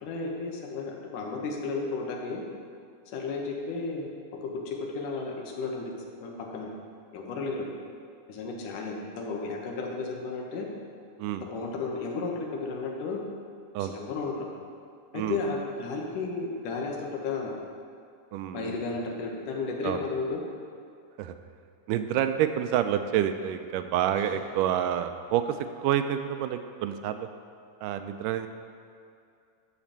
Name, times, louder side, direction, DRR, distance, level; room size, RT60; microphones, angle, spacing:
voice 1, 0.0-2.4 3.1-4.1 4.7-5.9 6.2-6.7 7.1-7.7 8.3-10.7 11.5-13.2 13.8-14.5 15.1-17.5 18.5-20.4 24.2-24.3, left 4 dB, 80° left, 0 dB, 2.7 m, -33 dB
voice 2, 18.3-18.8 19.8-20.0 21.2-21.4 21.9-27.3 27.8-28.5, right 10 dB, 85° right, 9 dB, 2.2 m, -28 dB
12.5 x 4.4 x 7.3 m, 2.4 s
omnidirectional pair, 3.7 m